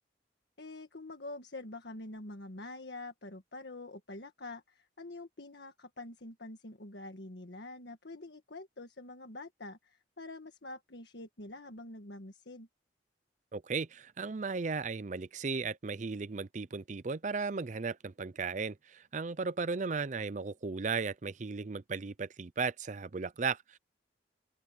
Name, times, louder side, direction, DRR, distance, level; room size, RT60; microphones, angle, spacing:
voice 1, 0.6-12.7, left 2 dB, 65° left, 1.6 m, -46 dB
voice 2, 13.5-23.8, right 4 dB, 40° right, 0.5 m, -36 dB
open air
head